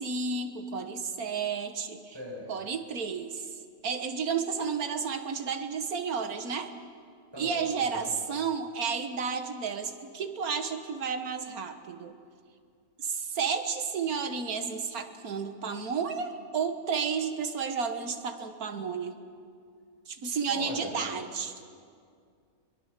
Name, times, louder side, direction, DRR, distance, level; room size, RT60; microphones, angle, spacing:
voice 1, 0.0-2.2 2.5-6.7 7.4-12.1 13.0-19.2 20.1-21.5, right 6 dB, 90° right, 7 dB, 1.8 m, -32 dB
voice 2, 2.1-2.5 7.3-8.1 20.4-20.9, equal, 15° right, -3 dB, 6.0 m, -40 dB
23.0 x 22.5 x 6.7 m, 2.2 s
omnidirectional pair, 1.5 m